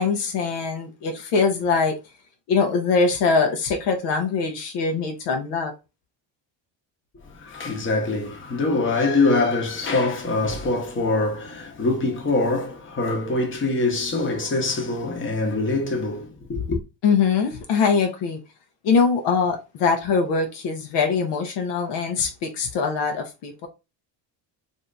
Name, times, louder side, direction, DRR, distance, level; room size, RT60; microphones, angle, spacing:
voice 1, 0.0-2.0 2.5-5.7 17.0-18.4 18.8-23.7, left 5 dB, 70° left, 0.8 m, -22 dB
voice 2, 7.3-16.8, left 3 dB, 25° left, 1.0 m, -24 dB
2.7 x 2.7 x 3.3 m
cardioid pair, 125°, 44 cm